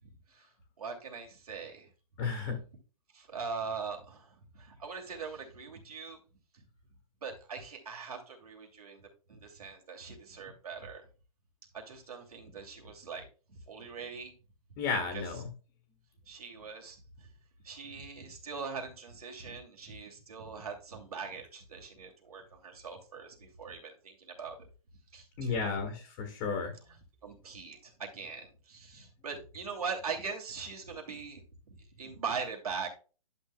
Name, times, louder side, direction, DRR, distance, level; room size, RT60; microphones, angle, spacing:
voice 1, 0.8-1.9 3.1-6.2 7.2-11.0 11.7-14.3 15.1-15.2 16.3-17.3 17.6-24.6 25.1-25.8 27.2-31.4 31.7-33.0, right 5 dB, 75° right, 1 dB, 2.6 m, -41 dB
voice 2, 2.2-2.6 14.8-15.5 25.4-26.7, left 4 dB, 30° left, 5 dB, 1.5 m, -33 dB
11.0 x 6.5 x 2.3 m, 0.35 s
hypercardioid pair, 150°, 19 cm